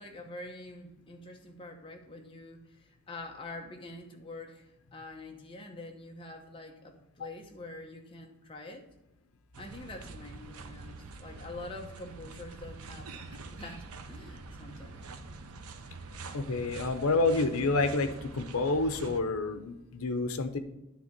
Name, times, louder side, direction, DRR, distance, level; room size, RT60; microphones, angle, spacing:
voice 1, 0.0-8.9 9.6-15.1, left 2 dB, 25° left, 2 dB, 0.9 m, -46 dB
sound 1, 9.5-19.2, right 3 dB, 90° right, 0.7 m, -45 dB
voice 2, 16.3-20.6, left 3 dB, 80° left, 9 dB, 0.7 m, -29 dB
10.0 x 3.5 x 6.7 m, 0.97 s
head